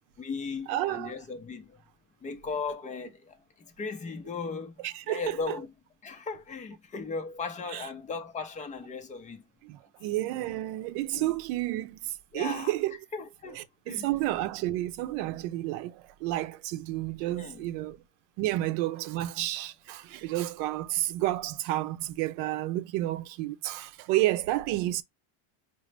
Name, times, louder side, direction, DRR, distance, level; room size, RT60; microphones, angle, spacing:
voice 1, 0.2-1.8 2.2-5.7 6.0-9.4 11.1-11.3 12.3-14.1 17.4-17.6 20.2-20.3, left 4 dB, 15° left, 0.5 m, -37 dB
voice 2, 0.7-1.1 4.8-5.5 7.7-7.9 9.6-13.0 13.6-18.0 18.4-25.0, right 15 dB, 80° right, 0.7 m, -31 dB
5.1 x 2.1 x 3.2 m
cardioid pair, 160°, 49 cm